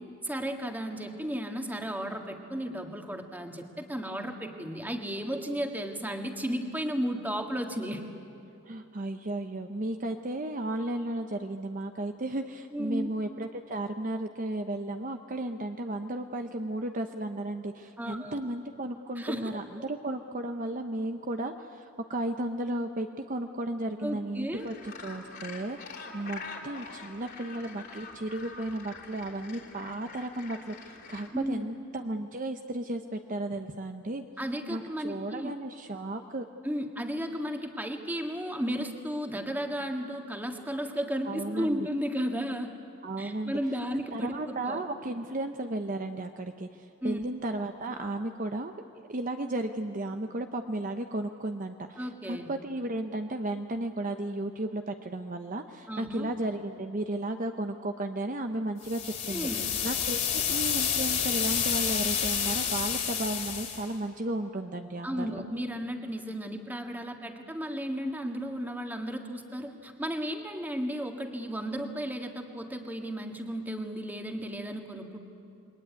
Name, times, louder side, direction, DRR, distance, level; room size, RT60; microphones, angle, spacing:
voice 1, 0.0-8.1 12.7-13.1 18.0-18.4 19.2-19.5 24.0-24.7 31.3-31.7 34.4-35.5 36.6-42.7 43.2-44.8 47.0-47.2 52.0-52.5 55.9-56.3 59.3-59.7 65.0-75.2, equal, 10° right, 3 dB, 1.8 m, -34 dB
voice 2, 8.7-34.2 34.7-36.5 41.2-41.9 43.0-43.6 44.1-48.8 49.1-59.5 59.8-65.4, right 1 dB, 40° right, 6 dB, 0.8 m, -34 dB
Gull seagull, 24.6-31.3, left 4 dB, 50° left, 3.3 m, -45 dB
sound 1, 58.8-63.9, left 8 dB, 35° left, 3.0 m, -29 dB
28.0 x 22.5 x 9.6 m, 2.7 s
head